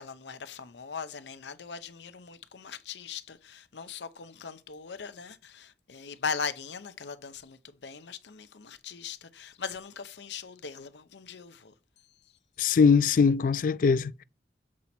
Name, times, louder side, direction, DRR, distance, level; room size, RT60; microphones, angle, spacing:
voice 1, 0.0-11.7, left 5 dB, 80° left, 0.7 m, -39 dB
voice 2, 12.6-14.2, left 5 dB, 50° left, 0.3 m, -22 dB
7.4 x 4.3 x 4.2 m
head